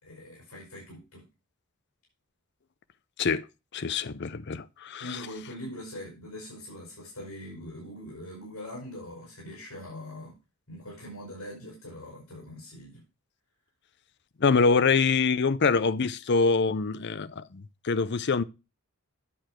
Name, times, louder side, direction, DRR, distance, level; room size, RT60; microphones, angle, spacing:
voice 1, 0.0-1.2 5.0-10.3 10.7-13.0, left 1 dB, 75° left, 5.5 m, -42 dB
voice 2, 3.7-5.2 14.4-18.4, left 4 dB, 50° left, 0.6 m, -25 dB
10.0 x 6.7 x 4.4 m
head